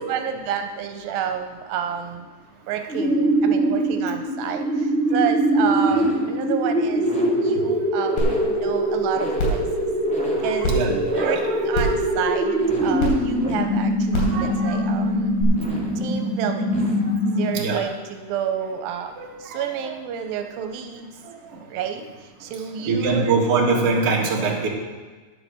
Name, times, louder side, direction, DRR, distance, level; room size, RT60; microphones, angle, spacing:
voice 1, 0.1-2.3 2.7-7.2 7.4-9.7 10.4-10.7 11.2-15.3 16.0-16.8 17.4-19.1 19.4-21.1 21.7-23.4, right 8 dB, 90° right, 6 dB, 2.6 m, -30 dB
sound 1, 2.9-17.8, right 1 dB, 5° left, 1.2 m, -23 dB
sound 2, 8.2-8.3 8.7-8.8 9.4-9.6 10.6-10.7 11.7-12.0 13.0-13.1 14.1-14.3 15.4-15.5, equal, 85° left, 4.7 m, -23 dB
voice 2, 10.4-11.6 12.1-12.2 14.1-14.8 17.5-17.8 19.2-19.9 21.5-21.6 22.8-24.7, right 4 dB, 50° right, -2 dB, 2.4 m, -24 dB
10.0 x 8.1 x 6.7 m, 1.4 s
omnidirectional pair, 4.1 m